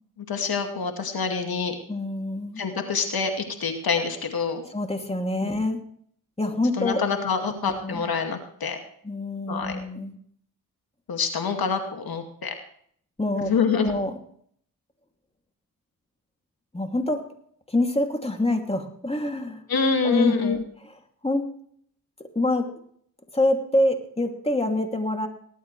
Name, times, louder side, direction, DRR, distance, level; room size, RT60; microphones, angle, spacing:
voice 1, 0.2-1.8 2.6-4.6 5.4-5.5 6.8-8.8 9.5-9.8 11.1-12.5 13.3-13.9 19.7-20.6, left 5 dB, 70° left, 5 dB, 2.3 m, -26 dB
voice 2, 1.9-2.6 4.7-5.8 6.4-7.0 7.7-8.0 9.0-10.2 13.2-14.1 16.7-17.3 17.7-19.6 20.0-20.9 21.2-21.5 22.2-22.7 23.3-25.3, left 1 dB, 15° left, 4 dB, 2.7 m, -26 dB
19.5 x 12.0 x 3.3 m, 0.63 s
cardioid pair, 60°, 37 cm